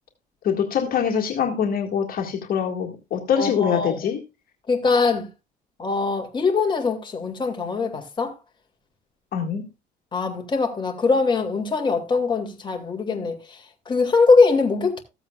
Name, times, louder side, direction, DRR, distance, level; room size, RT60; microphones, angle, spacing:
voice 1, 0.4-4.2 9.3-9.7, left 7 dB, 60° left, 1.9 m, -24 dB
voice 2, 3.4-4.0 4.7-5.3 5.8-8.4 10.1-15.0, left 4 dB, 25° left, 2.3 m, -22 dB
15.0 x 7.9 x 2.4 m
cardioid pair, 110°, 17 cm